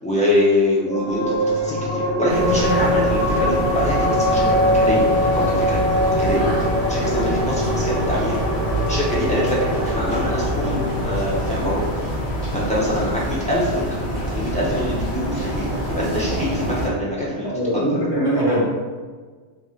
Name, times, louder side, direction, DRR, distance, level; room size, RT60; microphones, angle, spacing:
voice 1, 0.0-5.8 6.2-6.5 6.9-8.4 8.9-11.8 12.5-18.0, left 1 dB, 10° left, -8 dB, 0.4 m, -24 dB
sound 1, 0.9-13.7, equal, 30° right, 1.0 m, -23 dB
sound 2, 2.3-16.9, equal, 50° left, 1.1 m, -26 dB
voice 2, 17.5-18.7, right 1 dB, 75° left, -7 dB, 1.4 m, -21 dB
3.1 x 2.6 x 2.4 m, 1.5 s
omnidirectional pair, 1.2 m